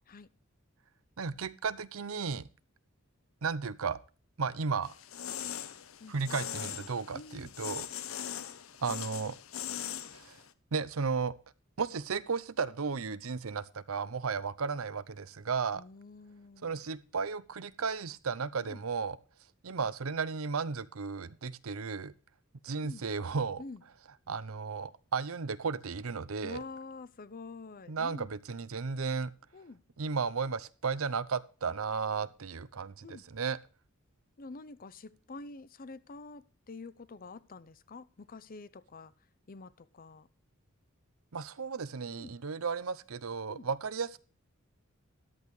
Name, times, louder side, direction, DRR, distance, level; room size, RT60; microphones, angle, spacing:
voice 1, 1.2-2.5 3.4-4.0 4.4-4.9 6.1-7.9 8.8-9.4 10.1-10.4 10.7-11.3 11.8-15.8 16.6-19.2 19.6-22.1 22.6-23.6 24.3-26.6 27.9-29.3 30.0-33.6 41.3-44.2, right 5 dB, 90° right, 16 dB, 0.7 m, -34 dB
sound 1, 4.8-10.5, left 10 dB, 80° left, 0.8 m, -41 dB
voice 2, 7.1-7.5 15.7-16.8 18.6-18.8 22.8-23.0 23.6-23.8 26.4-28.3 29.5-29.8 33.0-33.2 34.4-39.1 39.5-40.3 42.1-42.4 43.5-43.7, left 3 dB, 45° left, 17 dB, 0.6 m, -47 dB
13.5 x 11.0 x 3.2 m, 0.36 s
head